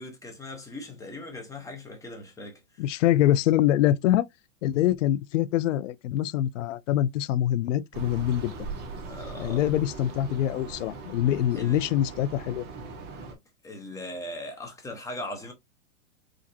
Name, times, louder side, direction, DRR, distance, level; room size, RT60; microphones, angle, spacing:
voice 1, 0.0-2.8 9.1-9.6 11.6-11.8 13.1-13.3 13.6-15.5, left 1 dB, 10° left, 1.0 m, -39 dB
voice 2, 2.8-4.3 4.6-8.5 9.4-12.6, left 12 dB, 60° left, 0.5 m, -24 dB
sound 1, 7.9-13.3, right 4 dB, 25° right, 1.1 m, -40 dB
5.0 x 2.5 x 2.8 m
hypercardioid pair, 145°, 42 cm